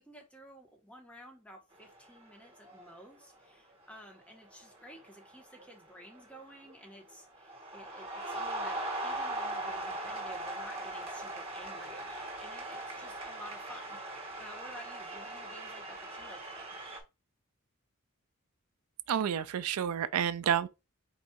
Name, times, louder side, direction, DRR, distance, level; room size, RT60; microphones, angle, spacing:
voice 1, 0.0-16.8, equal, 5° left, 1.1 m, -52 dB
sound 1, 1.7-2.2 2.5-3.0 3.9-4.1 4.5-6.8 7.1-17.0, right 1 dB, 30° right, 1.4 m, -40 dB
voice 2, 19.1-20.7, right 8 dB, 85° right, 0.4 m, -30 dB
4.6 x 2.6 x 4.5 m
head